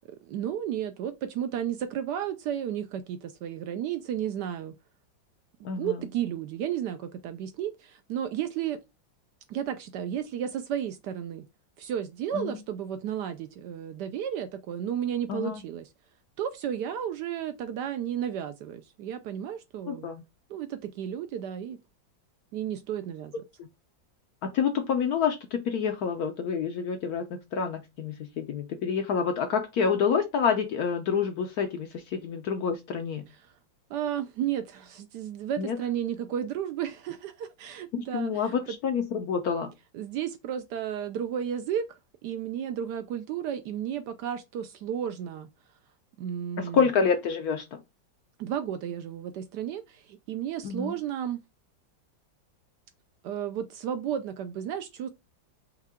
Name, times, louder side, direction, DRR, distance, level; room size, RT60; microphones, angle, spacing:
voice 1, 0.2-4.7 5.8-8.8 9.5-11.5 11.8-15.9 16.4-20.1 20.5-21.8 22.5-23.3 33.9-38.8 39.9-45.5 46.2-46.9 48.4-51.4 53.2-55.1, right 9 dB, 75° right, 1.0 m, -33 dB
voice 2, 5.6-6.0 12.3-12.6 15.3-15.6 19.9-20.2 23.6-23.7 24.4-33.2 35.6-35.8 38.1-39.7 46.6-47.8 50.6-51.0, left 6 dB, 70° left, 1.0 m, -28 dB
5.5 x 2.3 x 3.5 m
omnidirectional pair, 2.1 m